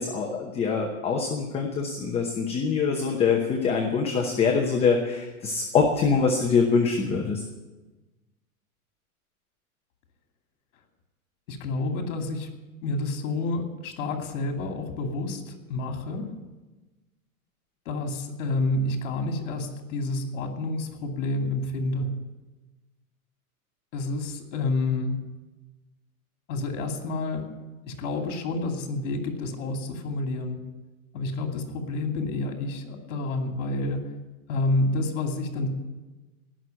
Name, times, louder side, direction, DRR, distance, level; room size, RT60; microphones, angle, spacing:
voice 1, 0.0-7.4, left 5 dB, 15° left, 1 dB, 0.9 m, -24 dB
voice 2, 11.5-12.5 12.8-16.3 17.8-22.1 23.9-25.2 26.5-27.5 27.8-30.6 31.1-34.0 34.5-35.7, left 2 dB, 55° left, 4 dB, 2.6 m, -29 dB
18.5 x 6.4 x 8.9 m, 1.2 s
supercardioid pair, 155°, 44 cm